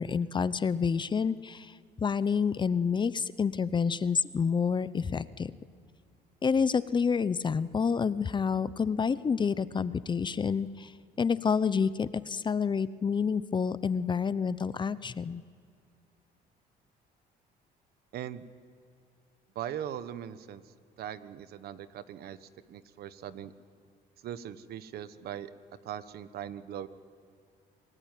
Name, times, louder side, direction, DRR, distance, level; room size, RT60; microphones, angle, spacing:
voice 1, 0.0-1.7 2.0-5.5 6.4-10.9 11.2-15.4, left 6 dB, 25° left, 16 dB, 0.7 m, -28 dB
voice 2, 18.1-18.4 19.5-23.5 24.2-25.5 25.8-26.9, right 10 dB, 70° right, 13 dB, 1.3 m, -40 dB
27.5 x 18.0 x 9.2 m, 2.4 s
cardioid pair, 110°, 17 cm